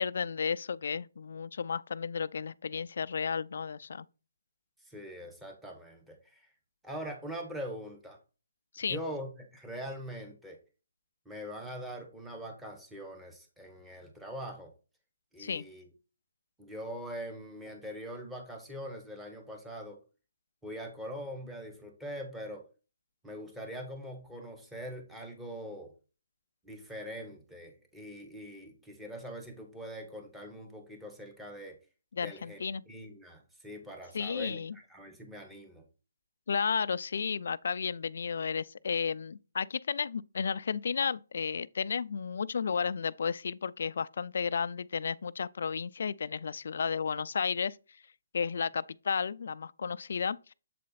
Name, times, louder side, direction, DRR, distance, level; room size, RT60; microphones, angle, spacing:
voice 1, 0.0-4.0 8.7-9.0 15.4-15.6 32.1-32.8 34.1-34.8 36.5-47.8 48.3-50.4, left 6 dB, 60° left, 0.3 m, -33 dB
voice 2, 4.8-6.5 6.8-8.2 8.8-10.6 11.2-14.7 15.3-15.9 16.6-20.0 20.6-22.7 23.2-25.9 26.6-31.8 32.2-32.6 32.9-35.8, equal, 5° right, 1.1 m, -42 dB
7.5 x 4.2 x 4.0 m
hypercardioid pair, 165°, 0 cm